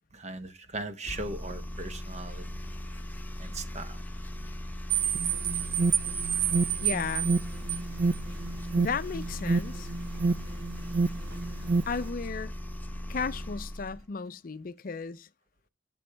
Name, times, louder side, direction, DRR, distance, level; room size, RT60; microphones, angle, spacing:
voice 1, 0.1-2.5 3.4-3.9, right 2 dB, 40° right, 0.9 m, -38 dB
sound 1, 1.0-14.0, left 1 dB, 10° left, 0.7 m, -38 dB
sound 2, 4.9-12.1, right 10 dB, 80° right, 1.1 m, -33 dB
Alarm, 5.1-11.9, right 3 dB, 60° right, 0.4 m, -29 dB
voice 2, 6.8-7.3 8.8-9.9 11.9-12.5 13.1-15.3, left 5 dB, 50° left, 0.5 m, -34 dB
8.0 x 7.0 x 3.3 m
head